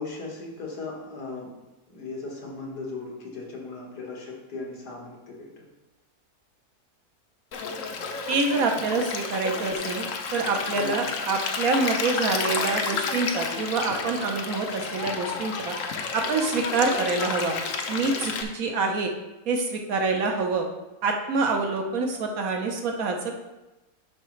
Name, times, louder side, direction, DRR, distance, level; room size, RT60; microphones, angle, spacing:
voice 1, 0.0-1.5 1.9-5.7 10.7-11.0, left 3 dB, 85° left, -2 dB, 2.1 m, -37 dB
Stream, 7.5-18.4, left 5 dB, 60° left, 1.0 m, -31 dB
voice 2, 8.3-15.8 16.1-17.5 17.9-19.1 19.5-20.7 21.0-23.4, right 3 dB, 65° right, 3 dB, 1.3 m, -26 dB
11.0 x 4.7 x 3.2 m, 1.0 s
omnidirectional pair, 1.7 m